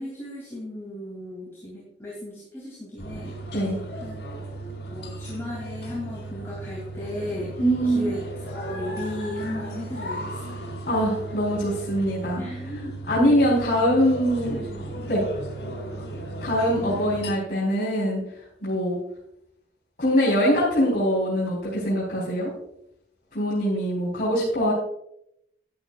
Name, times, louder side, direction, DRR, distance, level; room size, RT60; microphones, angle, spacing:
voice 1, 0.0-3.3 4.0-4.2 4.9-8.2 8.5-10.7 12.4-13.0 16.9-17.0, left 1 dB, 15° left, -6 dB, 3.1 m, -35 dB
sound 1, 3.0-17.3, right 2 dB, 80° left, 3.4 m, -36 dB
voice 2, 7.6-8.2 10.9-12.4 13.1-14.6 15.1-15.2 16.4-18.2 18.6-19.0 20.0-22.5 23.3-24.7, equal, 50° left, -9 dB, 4.1 m, -23 dB
13.0 x 10.5 x 2.5 m, 0.78 s
head